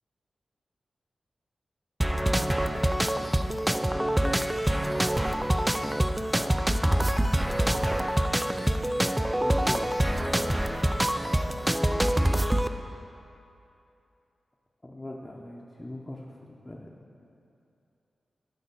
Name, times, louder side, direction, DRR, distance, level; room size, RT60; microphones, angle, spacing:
sound 1, 2.0-12.7, right 1 dB, 10° right, 0.3 m, -25 dB
voice 1, 3.9-4.4 9.4-10.0 14.8-16.9, left 1 dB, 25° left, -3 dB, 0.7 m, -40 dB
voice 2, 7.2-8.1 10.6-12.8, right 1 dB, 70° right, 0 dB, 1.0 m, -49 dB
8.8 x 4.0 x 5.3 m, 2.7 s
cardioid pair, 50°, 0 cm